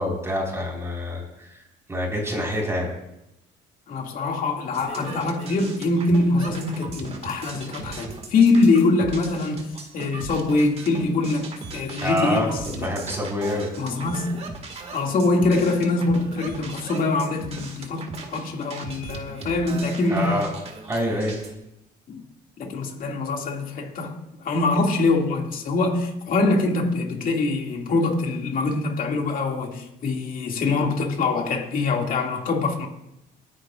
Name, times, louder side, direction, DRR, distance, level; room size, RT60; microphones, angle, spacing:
voice 1, 0.0-1.6 1.9-2.9 12.0-12.5 12.8-13.7 20.1-20.5 20.9-21.4, left 1 dB, 15° right, 4.7 m, -26 dB
voice 2, 3.9-9.7 9.9-12.9 13.8-14.5 14.9-20.4 22.1-22.2 22.6-32.9, left 3 dB, 55° left, 2.3 m, -23 dB
sound 1, 4.7-21.5, right 4 dB, 35° right, 1.9 m, -38 dB
28.5 x 9.7 x 2.5 m
cardioid pair, 110°, 17 cm